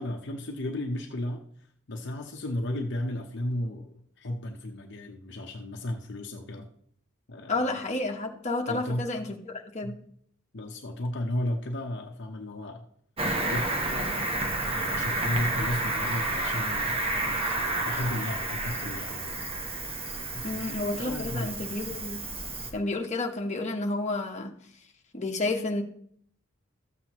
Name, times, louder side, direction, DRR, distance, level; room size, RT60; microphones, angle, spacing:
voice 1, 0.0-1.4 1.9-6.7 7.3-7.8 8.7-9.1 9.8-10.0 10.5-12.8 13.5-19.4 20.3-21.5, left 1 dB, 55° left, 2 dB, 0.8 m, -34 dB
voice 2, 7.5-9.4 9.7-9.9 20.4-22.2 22.7-24.5 25.1-25.8, left 2 dB, 35° left, 1 dB, 1.1 m, -30 dB
Cricket, 13.2-22.7, right 2 dB, 30° right, 1.1 m, -30 dB
13.5 x 7.6 x 3.0 m, 0.63 s
head